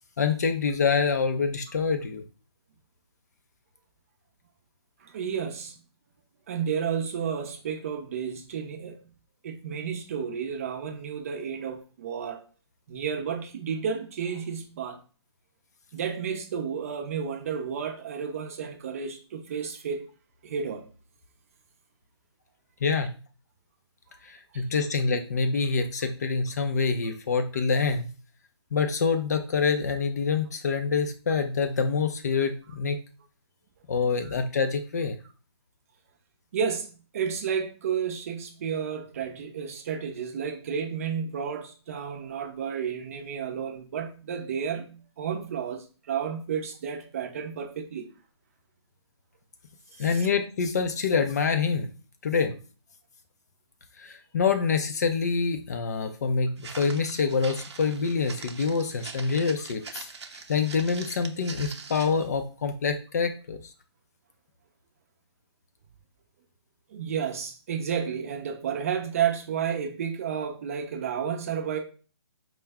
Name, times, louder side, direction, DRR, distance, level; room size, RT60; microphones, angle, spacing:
voice 1, 0.2-2.2 22.8-23.1 24.2-28.1 28.7-33.0 33.9-35.2 50.0-51.9 52.2-52.6 54.0-60.1 60.5-63.6, left 5 dB, 40° left, 0.4 m, -26 dB
voice 2, 5.0-5.8 6.5-9.1 9.4-12.4 12.9-15.0 15.9-20.0 20.4-20.8 24.5-24.6 34.2-34.4 36.5-48.1 50.0-50.3 66.9-71.8, right 7 dB, 30° right, 0.6 m, -32 dB
Walk footsteps, 56.6-62.3, right 5 dB, 75° right, 0.7 m, -43 dB
4.6 x 2.1 x 3.4 m
hypercardioid pair, 160°, 14 cm